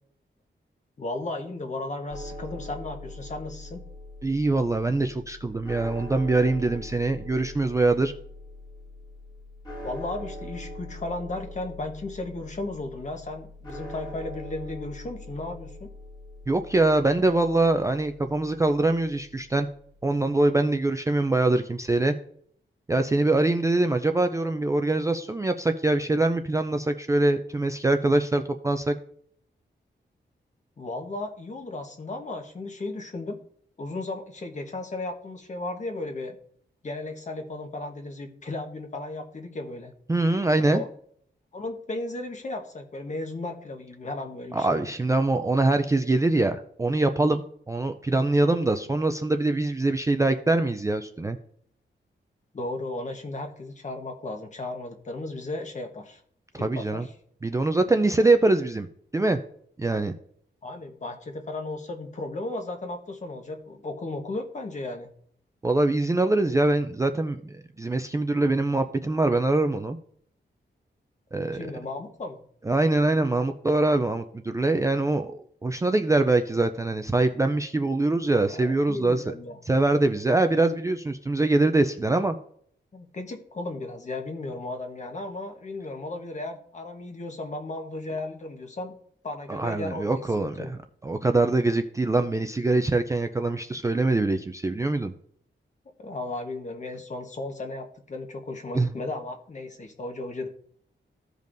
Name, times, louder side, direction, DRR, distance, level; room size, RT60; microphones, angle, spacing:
voice 1, 1.0-3.8 9.8-15.9 30.8-33.4 33.8-36.4 36.8-39.9 40.6-40.9 41.5-44.8 52.5-56.2 56.5-57.1 60.6-65.1 71.5-72.4 78.4-79.6 80.3-80.4 82.9-89.0 89.2-90.1 90.4-90.7 96.0-100.5, left 2 dB, 40° left, 4 dB, 1.1 m, -35 dB
sound 1, 2.1-20.0, left 1 dB, 20° left, 1.9 m, -42 dB
voice 2, 4.2-8.1 16.5-19.7 20.0-22.1 22.9-29.0 40.1-40.8 44.5-51.4 56.5-57.1 57.4-58.9 59.1-59.4 59.8-60.1 65.6-70.0 71.3-71.6 72.7-79.2 79.7-82.4 89.5-95.1 98.7-98.9, right 2 dB, 15° right, 6 dB, 0.3 m, -23 dB
15.5 x 5.3 x 2.6 m, 0.63 s
wide cardioid pair, 175°, 19 cm